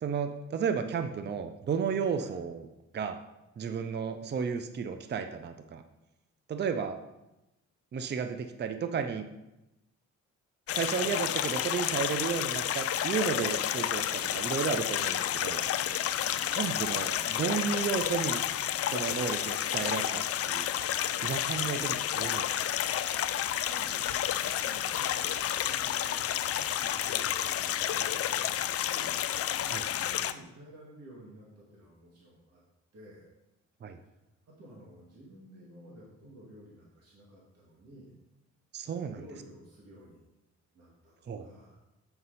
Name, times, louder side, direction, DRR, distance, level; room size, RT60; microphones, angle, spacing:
voice 1, 0.0-2.6 2.9-3.2 3.6-5.8 6.5-7.0 7.9-9.3 10.7-15.6 16.5-18.4 18.9-20.7 21.2-22.6 29.7-29.9 33.8-34.0 38.7-39.2 41.3-41.5, right 6 dB, 35° right, 8 dB, 0.6 m, -33 dB
sound 1, 10.7-30.3, left 11 dB, 50° left, 0.4 m, -30 dB
voice 2, 23.6-25.3 25.6-29.2 29.9-32.6 32.9-33.3 34.5-38.1 39.1-40.2 40.7-41.8, right 1 dB, 55° right, -5 dB, 2.4 m, -52 dB
7.9 x 5.3 x 4.1 m, 0.94 s
cardioid pair, 90°, 30 cm